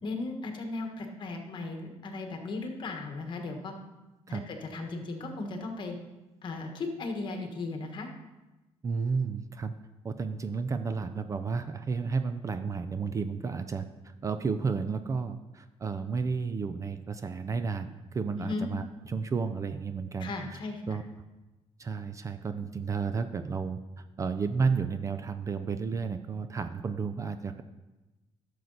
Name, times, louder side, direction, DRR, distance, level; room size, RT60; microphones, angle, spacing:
voice 1, 0.0-3.7 4.3-6.0 6.4-8.1 18.4-18.7 20.2-21.0, left 3 dB, 45° left, 4 dB, 1.4 m, -36 dB
voice 2, 8.8-9.7 10.0-20.3 20.9-21.0 21.8-27.6, right 5 dB, 30° right, 9 dB, 0.4 m, -32 dB
12.0 x 6.6 x 4.0 m, 1.1 s
cardioid pair, 140°, 11 cm